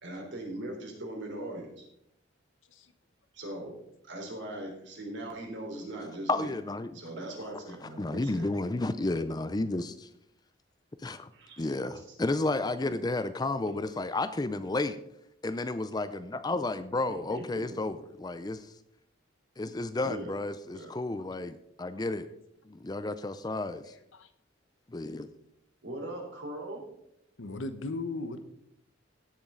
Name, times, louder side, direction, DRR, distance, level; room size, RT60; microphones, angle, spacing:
voice 1, 0.0-1.8 3.3-3.8 4.0-6.5 6.9-8.5 11.3-11.7 12.0-12.2 13.7-13.8 17.1-17.6 20.0-20.3 20.7-20.9 25.8-26.8, right 1 dB, 65° right, 0 dB, 3.6 m, -40 dB
voice 2, 6.3-7.0 8.0-9.9 11.0-11.3 11.6-15.0 15.4-18.7 19.6-22.3 22.7-23.9 24.9-25.3, left 2 dB, 20° left, 12 dB, 0.4 m, -32 dB
voice 3, 23.9-24.3 27.4-28.4, left 2 dB, 80° left, 10 dB, 1.0 m, -36 dB
17.0 x 7.3 x 3.8 m, 0.77 s
head